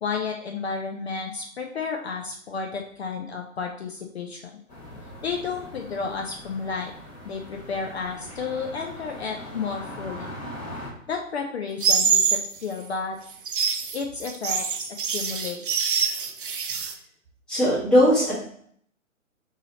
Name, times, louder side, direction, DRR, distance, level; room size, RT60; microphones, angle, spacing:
voice 1, 0.0-4.5 5.2-6.9 7.2-10.3 11.1-13.2 13.9-14.9 15.1-15.6, left 5 dB, 55° left, 2 dB, 0.5 m, -32 dB
sound 1, 4.7-10.9, equal, 35° left, 1.4 m, -41 dB
sound 2, 11.8-12.5 13.3-16.9, right 6 dB, 40° right, 0.5 m, -24 dB
voice 2, 17.5-18.4, equal, ahead, -9 dB, 1.1 m, -19 dB
4.8 x 2.8 x 2.9 m, 0.63 s
figure-of-eight pair, 135°, 40 cm